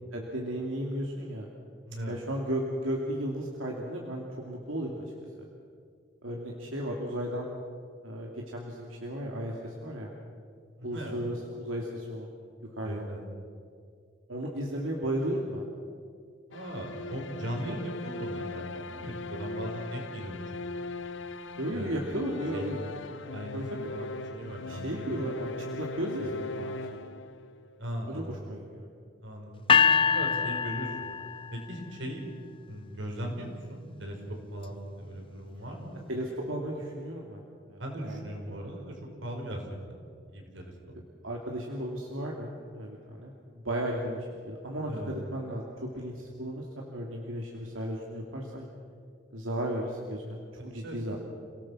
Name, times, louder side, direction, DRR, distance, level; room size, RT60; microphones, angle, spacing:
voice 1, 0.1-1.5 2.1-5.0 6.2-7.5 8.0-10.1 10.8-12.3 12.8-13.1 14.3-15.6 17.7-17.8 21.6-22.8 23.5-24.1 24.7-27.2 28.1-28.9 36.1-37.4 37.7-38.7 41.2-48.7 49.3-51.2, right 1 dB, 90° right, -1 dB, 2.6 m, -35 dB
voice 2, 1.8-2.2 10.8-11.2 12.8-13.2 16.5-20.9 21.7-22.2 22.5-22.8 23.3-25.4 26.2-26.3 27.8-28.4 29.2-31.1 31.5-32.3 32.7-36.0 37.8-40.7 44.8-45.2 50.8-50.9, equal, 70° right, 2 dB, 4.8 m, -39 dB
sound 1, 16.5-27.6, left 2 dB, 70° left, 0.9 m, -39 dB
sound 2, 29.7-31.8, left 6 dB, 25° left, 0.5 m, -24 dB
29.0 x 18.0 x 6.2 m, 2.3 s
head